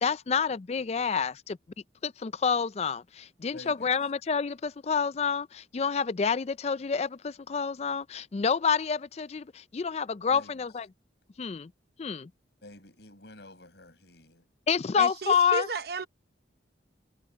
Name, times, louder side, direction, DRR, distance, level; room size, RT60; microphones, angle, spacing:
voice 1, 0.0-1.6 2.0-10.9 11.4-11.7 12.0-12.3 14.7-15.7, left 6 dB, 35° left, 0.4 m, -28 dB
voice 2, 3.5-3.9 10.3-10.6 12.6-14.4, left 1 dB, 65° left, 6.3 m, -50 dB
voice 3, 15.0-16.1, right 3 dB, 55° right, 0.8 m, -33 dB
head